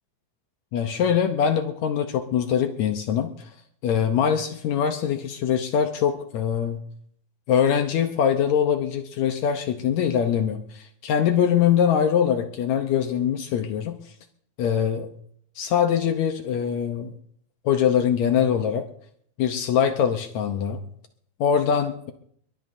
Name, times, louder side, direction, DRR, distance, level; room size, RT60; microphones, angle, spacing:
voice 1, 0.7-3.3 3.8-6.9 7.5-14.0 14.6-15.1 15.6-17.1 17.6-18.8 19.4-20.8 21.4-22.1, left 8 dB, 75° left, 6 dB, 1.6 m, -23 dB
22.5 x 20.5 x 2.7 m, 0.66 s
omnidirectional pair, 4.3 m